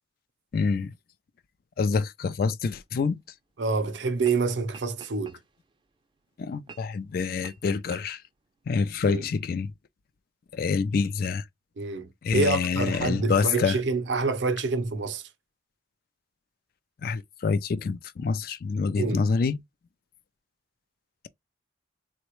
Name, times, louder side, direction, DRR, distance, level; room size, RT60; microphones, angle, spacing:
voice 1, 0.5-0.9 1.8-3.2 6.4-8.2 8.7-9.7 10.5-11.4 12.2-13.8 17.0-19.6, left 5 dB, 50° left, 0.3 m, -26 dB
sound 1, 2.9-3.1 4.1-4.4 4.7-5.7 6.7-7.0 7.4-7.6 7.9-8.1, right 4 dB, 25° right, 0.4 m, -46 dB
voice 2, 3.6-5.4 9.1-9.2 11.8-15.3 19.0-19.2, right 4 dB, 70° right, 0.6 m, -27 dB
3.7 x 2.1 x 3.0 m
head